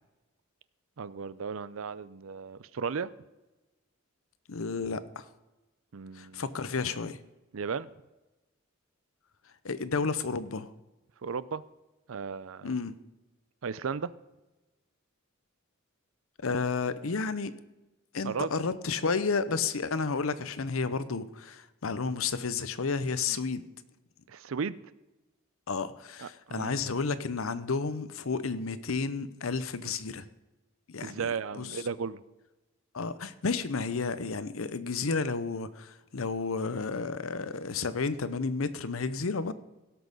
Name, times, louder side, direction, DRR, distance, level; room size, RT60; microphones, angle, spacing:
voice 1, 1.0-3.1 5.9-6.4 7.5-7.9 11.2-11.6 12.1-12.7 13.6-14.1 18.2-18.5 24.3-24.8 26.2-26.7 31.0-32.2, right 5 dB, 75° right, 17 dB, 0.5 m, -35 dB
voice 2, 4.5-5.3 6.1-7.2 9.6-10.7 12.6-12.9 16.4-17.5 18.1-23.7 25.7-30.3 30.9-31.8 32.9-39.5, left 4 dB, 75° left, 14 dB, 0.8 m, -32 dB
17.0 x 6.3 x 5.3 m, 1.0 s
head